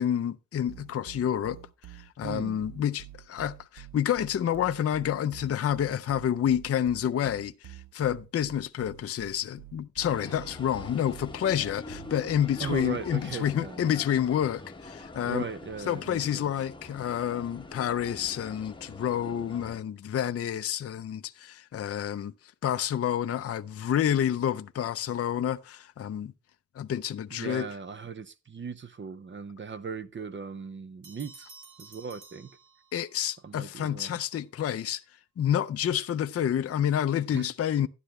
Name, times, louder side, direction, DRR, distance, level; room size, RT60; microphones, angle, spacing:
voice 1, 0.0-1.6 2.2-15.4 15.9-22.3 22.6-26.3 26.8-27.7 32.9-35.0 35.4-37.9, left 10 dB, 45° left, 0.4 m, -29 dB
sound 1, 0.7-13.1, right 14 dB, 75° right, 0.6 m, -48 dB
voice 2, 2.2-2.6 10.1-10.4 12.6-14.0 15.2-16.5 27.3-31.5 31.8-32.5 33.4-34.2 37.3-37.5, right 5 dB, 35° right, 0.6 m, -38 dB
sound 2, 10.0-19.8, left 2 dB, 15° left, 0.9 m, -44 dB
sound 3, 31.0-33.3, right 4 dB, 60° right, 2.0 m, -52 dB
11.5 x 9.9 x 3.1 m
wide cardioid pair, 175°, 34 cm